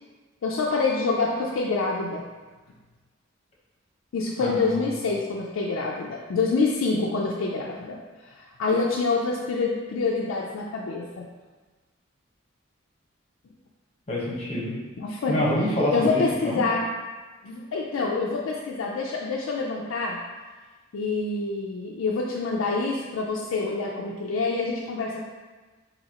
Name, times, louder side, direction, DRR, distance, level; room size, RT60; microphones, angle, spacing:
voice 1, 0.4-2.2 4.1-8.0 8.2-11.3 15.0-15.4 15.9-16.9 17.4-20.2 20.9-25.2, left 3 dB, 85° left, -3 dB, 0.4 m, -26 dB
voice 2, 4.4-4.8 14.1-14.7 15.3-16.6, left 1 dB, 35° left, -5 dB, 1.0 m, -26 dB
4.1 x 2.7 x 2.8 m, 1.3 s
head